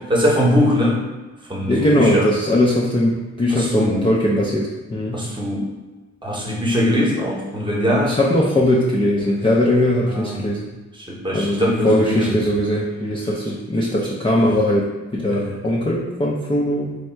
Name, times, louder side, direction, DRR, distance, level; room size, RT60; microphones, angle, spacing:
voice 1, 0.1-1.0 1.5-2.3 3.5-4.1 5.1-5.7 6.2-8.1 9.2-9.4 10.1-10.5 10.9-12.3 15.3-15.5, equal, 15° right, -4 dB, 0.9 m, -21 dB
voice 2, 1.7-5.2 8.0-10.7 11.3-17.0, left 1 dB, 20° left, -6 dB, 0.4 m, -20 dB
3.2 x 2.7 x 4.4 m, 1.2 s
wide cardioid pair, 145°, 29 cm